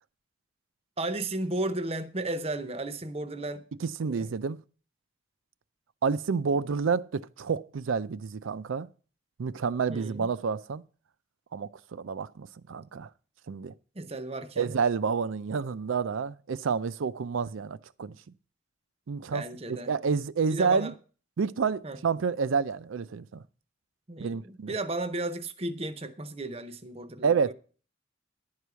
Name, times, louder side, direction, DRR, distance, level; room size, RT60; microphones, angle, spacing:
voice 1, 1.0-3.6 4.1-4.3 9.9-10.3 13.9-14.7 19.3-19.9 20.5-20.9 21.8-22.0 24.1-27.5, right 2 dB, 30° right, 0.7 m, -34 dB
voice 2, 3.8-4.6 6.0-8.9 9.4-10.8 11.5-13.1 13.5-13.7 14.6-18.2 19.1-19.4 19.7-20.9 21.4-23.4 24.2-24.7 27.2-27.5, right 5 dB, 75° right, 0.4 m, -29 dB
11.0 x 4.8 x 6.8 m
head